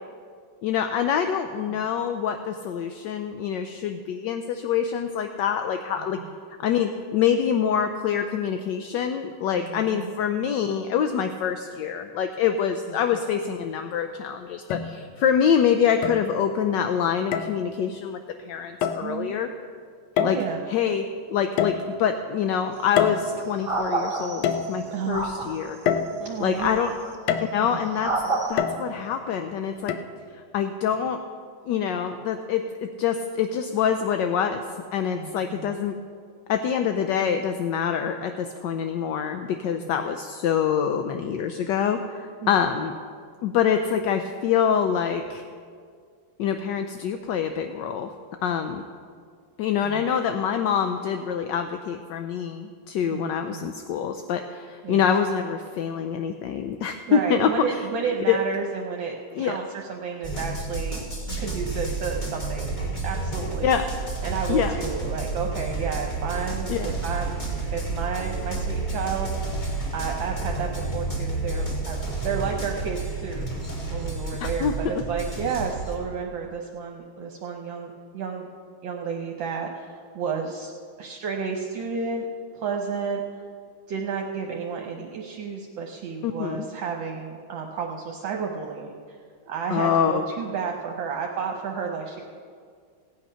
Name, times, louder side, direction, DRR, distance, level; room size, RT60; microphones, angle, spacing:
voice 1, 0.6-6.2 6.6-18.2 18.4-19.5 20.2-20.4 20.7-25.8 26.4-26.9 27.4-28.1 28.5-29.9 30.3-31.2 31.7-34.6 34.9-36.0 36.5-43.0 43.4-45.4 46.4-48.1 48.4-48.8 49.6-57.8 58.3-58.4 59.3-59.6 63.6-63.9 64.5-64.8 66.7-66.9 74.4-74.9 86.2-86.7 89.7-90.2, left 8 dB, 70° left, 7 dB, 1.1 m, -25 dB
voice 2, 9.6-10.1 19.0-19.4 20.2-20.6 24.9-25.3 26.2-26.7 27.6-27.8 35.1-35.8 39.8-39.9 42.4-42.5 49.8-50.0 53.1-53.7 54.8-55.0 57.1-61.0 61.4-62.7 63.0-63.7 64.2-67.4 67.7-69.7 69.9-78.5 78.8-80.7 81.0-82.3 82.6-83.2 83.9-89.2 89.5-92.2, right 6 dB, 70° right, 1 dB, 1.7 m, -31 dB
sound 1, 13.6-13.7 14.7-15.3 16.0-16.6 17.3-17.6 18.8-19.1 20.2-20.7 21.6-22.3 23.0-23.8 24.4-25.1 25.9-26.6 27.3-27.8 28.6-29.2 29.9-30.0, left 7 dB, 90° left, 1.6 m, -27 dB
sound 2, 22.7-22.9 23.6-24.7 25.1-25.7 26.6-27.2 28.0-28.5, right 3 dB, 30° right, 1.4 m, -28 dB
sound 3, 60.2-75.9, right 3 dB, 20° left, 2.5 m, -30 dB
17.0 x 8.7 x 5.5 m, 2.1 s
omnidirectional pair, 2.2 m